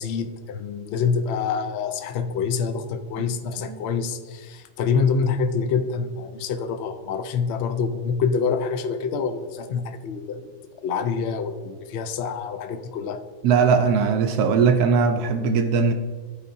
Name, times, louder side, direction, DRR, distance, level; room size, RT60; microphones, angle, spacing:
voice 1, 0.0-10.5 10.8-13.2, left 5 dB, 70° left, 8 dB, 0.6 m, -26 dB
voice 2, 13.4-15.9, right 5 dB, 75° right, 6 dB, 1.1 m, -20 dB
12.5 x 5.0 x 2.6 m, 1.5 s
omnidirectional pair, 1.7 m